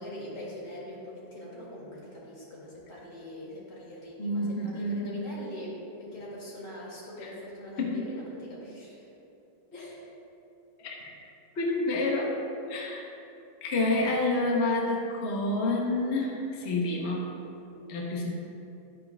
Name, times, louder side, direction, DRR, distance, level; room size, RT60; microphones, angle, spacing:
voice 1, 0.0-9.1 9.7-10.1, left 1 dB, 70° left, -6 dB, 2.9 m, -42 dB
voice 2, 4.2-5.2 7.2-7.3 7.8-8.1 9.8-9.9 10.8-11.0 11.5-12.4 12.7-13.0 13.6-17.3 17.9-18.3, left 2 dB, 45° left, -1 dB, 1.0 m, -28 dB
12.5 x 9.2 x 2.3 m, 2.8 s
omnidirectional pair, 1.9 m